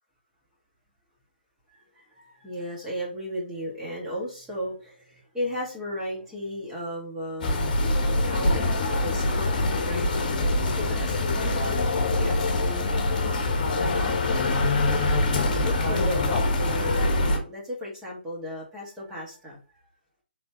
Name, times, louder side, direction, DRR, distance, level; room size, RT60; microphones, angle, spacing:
voice 1, 1.9-7.8 8.2-8.7 9.0-9.5 9.8-10.1 10.3-12.9 13.8-19.6, equal, 10° right, -4 dB, 2.0 m, -35 dB
sound 1, 7.4-17.4, left 2 dB, 50° left, 1.2 m, -24 dB
sound 2, 11.8-16.4, left 5 dB, 70° left, 0.5 m, -33 dB
3.9 x 3.7 x 3.0 m, 0.37 s
figure-of-eight pair, 140°, 6 cm